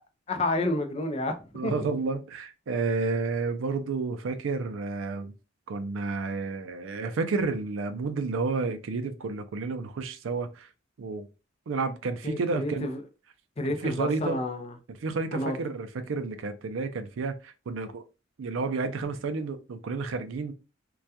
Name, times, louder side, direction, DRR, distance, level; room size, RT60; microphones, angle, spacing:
voice 1, 0.3-1.3 1.6-1.7 12.2-13.0 13.6-14.7 15.3-15.6, left 2 dB, 30° left, 0.4 m, -29 dB
voice 2, 1.5-5.3 5.7-10.7 11.0-11.3 11.7-12.9 13.8-14.4 15.0-18.0 18.4-20.5, right 4 dB, 80° right, 0.4 m, -31 dB
2.3 x 2.2 x 2.7 m
head